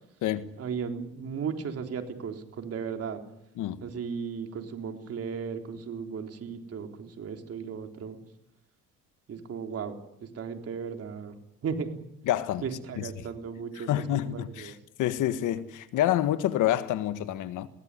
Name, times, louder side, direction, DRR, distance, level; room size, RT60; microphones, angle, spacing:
voice 1, 0.6-3.2 3.8-8.2 9.3-11.4 11.6-11.9 12.6-14.8, right 6 dB, 45° right, 3.7 m, -36 dB
voice 2, 12.3-12.6 13.0-13.1 13.9-14.7 15.0-17.7, left 12 dB, 70° left, 1.6 m, -27 dB
21.0 x 17.5 x 9.9 m
cardioid pair, 110°, 32 cm